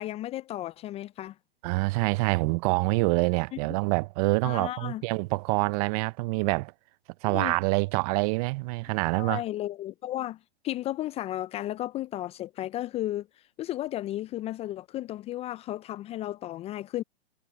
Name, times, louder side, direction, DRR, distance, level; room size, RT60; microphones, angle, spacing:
voice 1, 0.0-1.4 3.5-3.6 4.4-5.0 7.2-7.6 9.2-10.4 10.6-13.3 13.6-17.0, left 14 dB, 20° left, 0.5 m, -34 dB
voice 2, 1.6-6.7 7.2-9.4, right 26 dB, 40° right, 0.8 m, -26 dB
hypercardioid pair, 115°, 31 cm